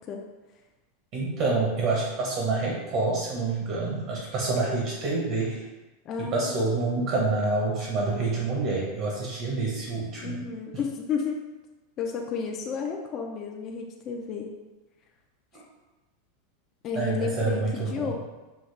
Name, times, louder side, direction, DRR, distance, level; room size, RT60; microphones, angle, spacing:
voice 1, 1.1-5.6 6.2-10.4 15.5-15.6 16.9-18.1, right 3 dB, 45° right, -3 dB, 0.9 m, -27 dB
voice 2, 6.1-6.5 10.2-11.4 12.0-14.5 16.8-18.1, left 6 dB, 30° left, 1 dB, 0.4 m, -32 dB
5.6 x 2.3 x 3.2 m, 1.1 s
supercardioid pair, 150°, 0 cm